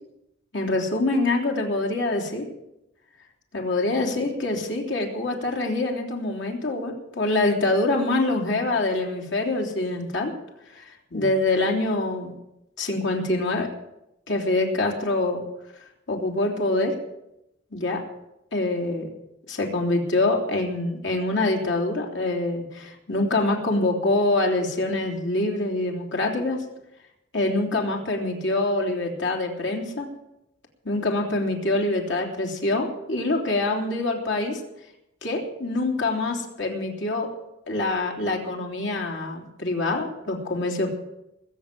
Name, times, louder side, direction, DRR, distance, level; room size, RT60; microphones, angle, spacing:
voice 1, 0.5-2.4 3.5-10.3 10.7-12.3 12.8-13.7 14.3-15.4 16.1-16.9 17.7-18.0 18.5-19.1 19.5-26.6 27.3-30.1 30.9-34.6 35.2-37.3 37.7-40.9, left 2 dB, 65° left, 0 dB, 3.4 m, -25 dB
20.5 x 8.5 x 7.6 m, 0.86 s
head